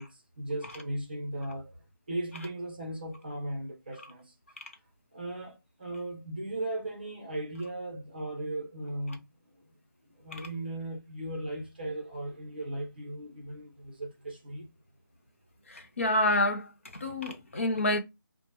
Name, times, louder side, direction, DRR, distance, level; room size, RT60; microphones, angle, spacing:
voice 1, 0.0-4.3 5.1-9.2 10.1-14.7, right 1 dB, 25° right, 0.7 m, -37 dB
voice 2, 15.7-18.0, left 1 dB, 35° left, 0.6 m, -28 dB
4.5 x 2.1 x 2.9 m
figure-of-eight pair, 175°, 11 cm